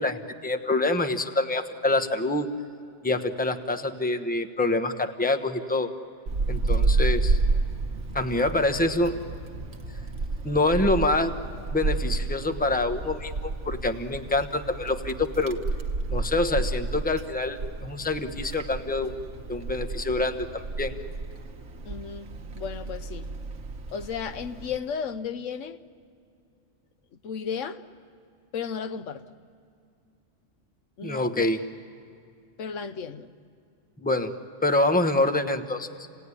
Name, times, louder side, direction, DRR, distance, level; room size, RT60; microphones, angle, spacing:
voice 1, 0.0-2.5 3.0-5.9 6.5-7.4 8.1-9.1 10.4-11.3 11.7-15.6 16.1-19.2 19.5-20.9 31.0-31.6 34.0-34.3 34.6-35.9, left 2 dB, 10° left, 0.9 m, -26 dB
Wind, 6.3-24.8, right 3 dB, 75° right, 1.4 m, -30 dB
voice 2, 21.8-23.3 23.9-25.8 27.2-27.8 28.5-29.2 31.0-31.5 32.6-33.3, left 6 dB, 90° left, 1.2 m, -34 dB
27.5 x 18.0 x 9.8 m
omnidirectional pair, 1.2 m